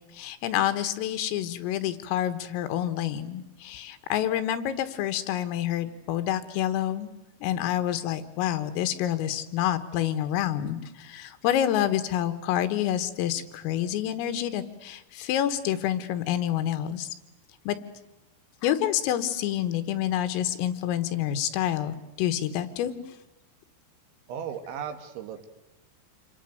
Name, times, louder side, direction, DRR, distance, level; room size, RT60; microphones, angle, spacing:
voice 1, 0.1-7.1 7.4-17.1 17.7-17.8 18.6-22.9, left 11 dB, 85° left, 10 dB, 4.0 m, -28 dB
voice 2, 24.3-25.5, right 8 dB, 70° right, 8 dB, 3.9 m, -36 dB
27.5 x 23.0 x 9.2 m, 0.95 s
omnidirectional pair, 5.9 m